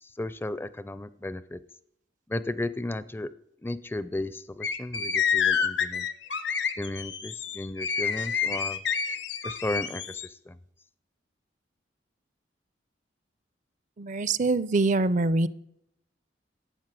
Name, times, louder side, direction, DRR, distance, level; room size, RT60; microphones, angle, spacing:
voice 1, 0.0-1.6 2.3-3.3 3.6-6.1 6.8-8.8 9.4-10.6, left 1 dB, 10° left, 15 dB, 0.4 m, -34 dB
sound 1, 4.6-10.3, left 7 dB, 70° left, 1.2 m, -28 dB
voice 2, 14.0-15.5, right 3 dB, 45° right, 18 dB, 0.5 m, -24 dB
12.5 x 8.7 x 7.5 m, 0.77 s
head